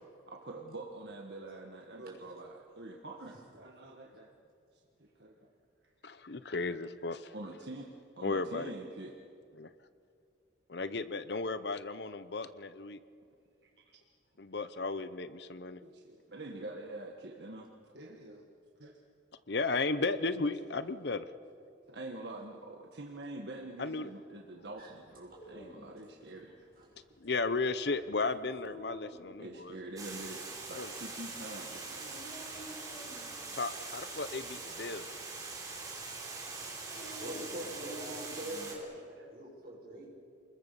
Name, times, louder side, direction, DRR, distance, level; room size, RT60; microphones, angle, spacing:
voice 1, 0.3-4.3 4.7-5.5 7.3-9.2 13.6-14.0 15.8-17.7 17.9-18.5 18.8-18.9 20.0-20.1 20.4-20.5 21.9-26.7 29.4-30.4 30.7-32.0 38.6-38.8 39.1-39.3, right 2 dB, 65° right, 1 dB, 1.6 m, -46 dB
voice 2, 6.0-7.3 8.2-8.7 9.6-9.7 10.7-13.0 14.4-15.8 19.5-21.2 23.8-24.1 27.2-29.7 30.7-30.9 33.5-35.0, left 3 dB, 65° left, 13 dB, 0.8 m, -34 dB
Dog, 25.0-38.8, equal, 35° left, 5.4 m, -53 dB
Water, 30.0-38.8, right 3 dB, 20° right, 3.8 m, -43 dB
voice 3, 37.0-38.9 39.3-40.1, right 1 dB, 50° right, -2 dB, 7.0 m, -43 dB
28.5 x 21.0 x 6.9 m, 2.4 s
head